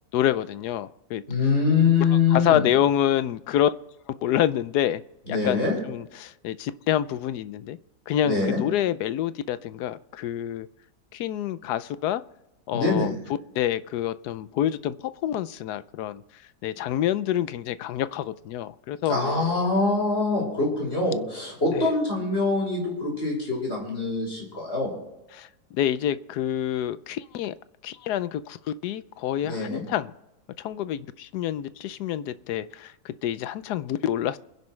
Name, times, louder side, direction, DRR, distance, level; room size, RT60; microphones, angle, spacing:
voice 1, 0.1-1.2 2.3-3.7 4.2-5.0 5.3-7.8 8.1-10.7 11.1-12.2 12.7-13.1 13.5-15.0 15.2-16.2 16.6-19.2 21.7-21.9 25.3-27.5 27.8-30.1 30.6-34.4, left 11 dB, 85° left, 14 dB, 1.2 m, -27 dB
voice 2, 1.3-2.6 5.3-5.8 8.2-8.6 12.7-13.1 19.1-24.9 29.4-29.8, left 4 dB, 40° left, -2 dB, 6.1 m, -24 dB
28.0 x 11.0 x 3.2 m, 0.95 s
omnidirectional pair, 1.7 m